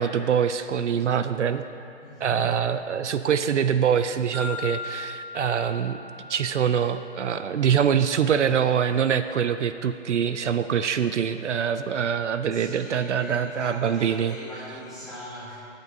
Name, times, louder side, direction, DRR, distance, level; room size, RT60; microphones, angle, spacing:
voice 1, 0.0-1.7 2.2-6.0 6.3-14.3, right 8 dB, 70° right, 10 dB, 0.5 m, -24 dB
voice 2, 2.0-2.5 12.5-15.6, left 1 dB, ahead, -14 dB, 0.9 m, -40 dB
sound 1, 4.3-8.3, left 3 dB, 20° right, 2.3 m, -39 dB
16.5 x 8.1 x 2.7 m, 2.6 s
hypercardioid pair, 170°, 37 cm